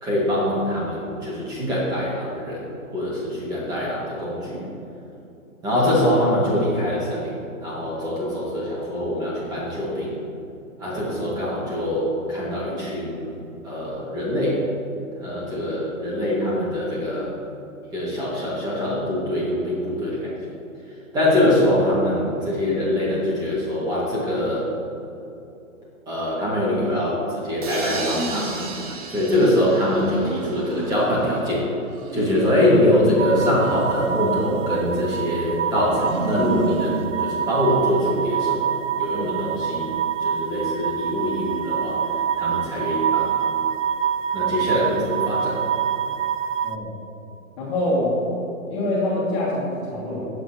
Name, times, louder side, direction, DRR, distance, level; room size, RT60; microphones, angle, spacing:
voice 1, 0.0-2.7 2.9-4.6 5.6-7.3 7.6-10.2 10.8-13.3 13.6-14.6 15.2-17.3 17.9-20.3 21.1-24.7 26.1-28.6 29.1-31.7 32.1-39.9 40.2-42.0 42.4-43.4 44.3-45.7, left 1 dB, 10° right, -6 dB, 2.1 m, -23 dB
sound 1, 27.6-31.4, right 3 dB, 25° right, 1.0 m, -35 dB
sound 2, 27.7-29.0 29.4-31.5 31.8-33.1 33.5-35.4 35.9-37.1, right 4 dB, 90° right, 1.1 m, -33 dB
sound 3, 33.2-46.8, right 8 dB, 60° right, 0.6 m, -26 dB
voice 2, 47.6-48.2 48.7-50.3, left 1 dB, 20° left, -6 dB, 2.2 m, -24 dB
16.5 x 8.0 x 3.0 m, 2.8 s
hypercardioid pair, 165°, 41 cm